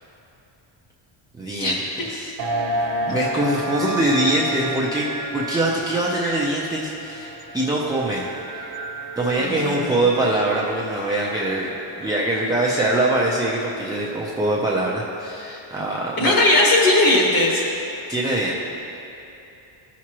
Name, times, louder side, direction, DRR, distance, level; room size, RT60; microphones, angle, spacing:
voice 1, 1.3-1.8 2.1-2.3 2.7-8.3 8.5-8.7 9.2-11.7 12.0-16.3 18.1-18.6, right 1 dB, 10° right, -5 dB, 0.4 m, -23 dB
sound 1, 2.4-13.8, right 1 dB, 60° right, 1.0 m, -32 dB
voice 2, 9.4-10.0 16.2-17.6, left 2 dB, 45° left, -2 dB, 1.6 m, -18 dB
14.0 x 6.1 x 2.9 m, 2.9 s
cardioid pair, 170°, 50 cm